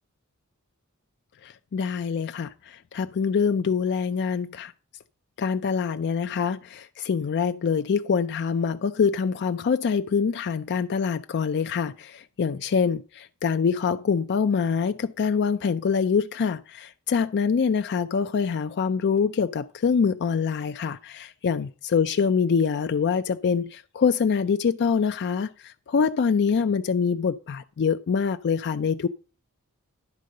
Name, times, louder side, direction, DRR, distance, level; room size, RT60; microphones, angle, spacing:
voice 1, 1.4-4.7 5.4-29.1, left 6 dB, 55° left, 0.4 m, -25 dB
11.0 x 3.8 x 6.5 m
head